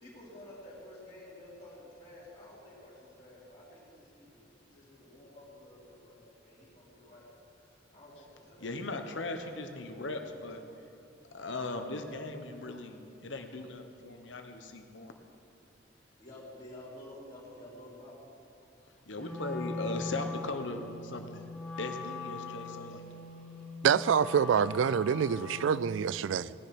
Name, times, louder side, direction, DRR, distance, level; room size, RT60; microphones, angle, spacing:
voice 1, 0.0-2.9 3.2-3.8 4.2-4.3 4.7-6.2 6.4-7.2 7.9-8.1 8.5-8.7 16.2-18.1 19.2-19.3 22.5-22.9, left 1 dB, 25° left, 3.1 m, -51 dB
voice 2, 8.6-10.6 11.3-15.1 19.1-21.4 21.8-23.0, left 2 dB, 75° left, 1.1 m, -38 dB
Wind instrument woodwind instrument, 19.2-25.9, left 3 dB, 5° left, 1.7 m, -41 dB
voice 3, 23.8-26.5, right 7 dB, 80° right, 0.3 m, -26 dB
17.0 x 10.0 x 6.0 m
head